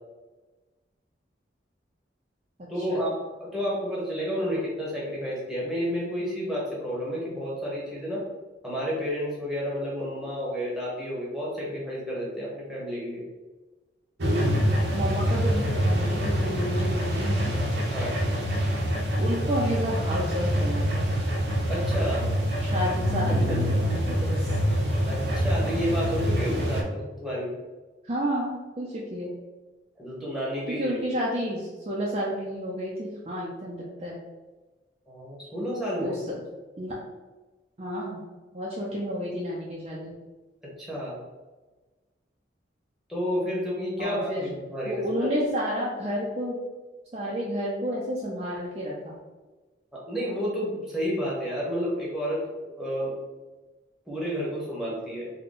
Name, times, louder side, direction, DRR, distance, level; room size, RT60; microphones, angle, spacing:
voice 1, 2.7-3.1 3.4-8.3 8.6-13.2 17.9-18.2 21.7-22.3 25.1-27.5 30.0-31.0 35.1-36.2 40.6-41.2 43.1-45.4 49.9-53.1 54.1-55.3, equal, ahead, -6 dB, 1.0 m, -31 dB
sound 1, 14.2-26.8, equal, 70° right, 0.7 m, -25 dB
voice 2, 14.9-17.5 19.2-21.1 22.6-24.6 28.0-29.3 30.8-34.2 36.0-36.2 36.8-37.0 37.8-38.2 38.5-40.1 44.0-44.5 44.9-46.7 47.1-49.1, equal, 35° right, -4 dB, 0.5 m, -30 dB
3.7 x 2.2 x 3.8 m, 1.2 s
head